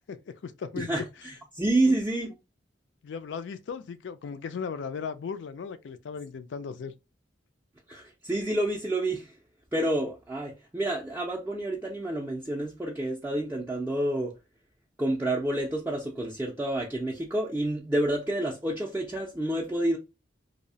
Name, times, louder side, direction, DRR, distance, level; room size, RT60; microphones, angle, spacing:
voice 1, 0.1-0.9 1.9-2.0 3.0-6.9, left 6 dB, 70° left, 0.4 m, -37 dB
voice 2, 1.5-2.4 7.9-9.3 9.7-14.4 15.0-20.0, right 1 dB, 10° right, 0.4 m, -29 dB
2.7 x 2.0 x 2.5 m
head